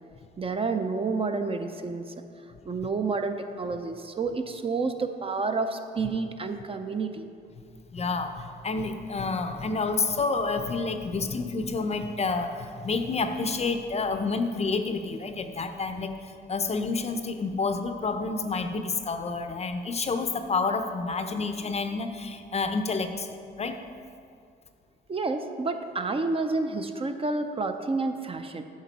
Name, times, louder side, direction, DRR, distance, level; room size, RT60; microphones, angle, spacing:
voice 1, 0.4-2.1 2.7-7.3 25.1-28.6, right 3 dB, 30° right, 7 dB, 0.5 m, -29 dB
voice 2, 7.9-23.8, left 4 dB, 35° left, 8 dB, 0.6 m, -29 dB
8.9 x 6.4 x 4.0 m, 2.3 s
cardioid pair, 90°, 20 cm